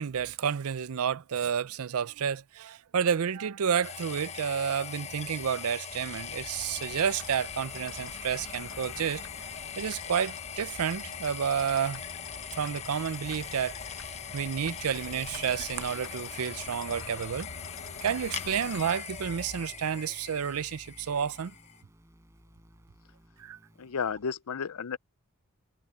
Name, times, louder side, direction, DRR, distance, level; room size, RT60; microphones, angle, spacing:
voice 1, 0.0-12.0 12.6-13.8 14.3-17.5 17.9-21.5 23.4-23.6, right 7 dB, 80° right, 0.5 m, -30 dB
sound 1, 3.8-21.8, left 7 dB, 30° left, 0.9 m, -41 dB
sound 2, 5.9-24.3, equal, 15° right, 5.6 m, -56 dB
sound 3, 6.5-18.9, left 4 dB, 65° left, 1.4 m, -48 dB
voice 2, 23.8-25.0, left 6 dB, 80° left, 0.6 m, -32 dB
head